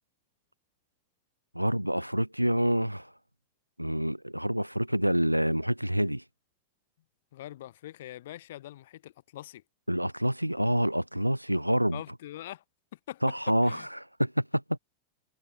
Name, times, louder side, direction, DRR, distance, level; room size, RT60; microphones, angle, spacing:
voice 1, 1.6-3.1 3.8-6.2 9.9-12.0 13.2-13.8 14.2-14.4 14.7-14.8, equal, 90° right, 0.3 m, -27 dB
voice 2, 7.3-9.6 11.9-12.6 13.1-13.9, left 14 dB, 55° left, 0.9 m, -43 dB
figure-of-eight pair, 90°, 0 cm